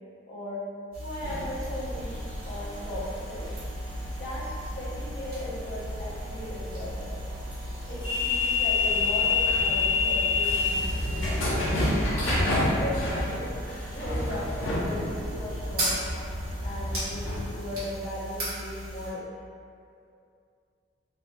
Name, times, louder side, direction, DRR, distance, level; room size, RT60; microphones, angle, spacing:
voice 1, 0.3-0.6 1.0-3.5 4.0-4.5 4.7-7.2 7.9-11.9 12.3-13.5 13.9-16.0 16.6-19.3, left 1 dB, 55° left, -9 dB, 0.8 m, -37 dB
sound 1, 0.9-19.1, equal, 50° right, 1.3 m, -37 dB
sound 2, 1.2-17.5, left 3 dB, 90° left, 0.6 m, -29 dB
3.2 x 2.4 x 2.6 m, 2.4 s
head